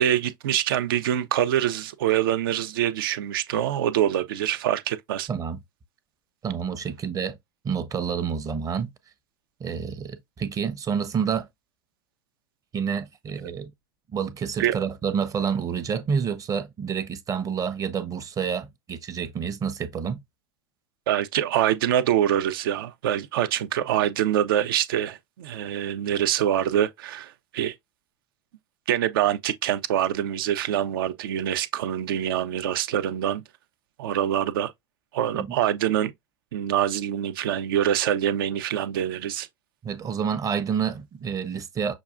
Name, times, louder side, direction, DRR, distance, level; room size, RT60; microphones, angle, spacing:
voice 1, 0.0-5.3 14.6-14.8 21.1-27.7 28.9-33.4 34.0-34.7 35.1-36.1 36.5-39.5, right 11 dB, 70° right, 0.5 m, -25 dB
voice 2, 5.3-5.6 6.4-7.4 7.6-8.9 9.6-11.5 12.7-13.7 14.1-20.2 35.3-35.6 39.8-41.9, right 7 dB, 30° right, 0.7 m, -28 dB
6.1 x 2.4 x 2.4 m
hypercardioid pair, 90°, 12 cm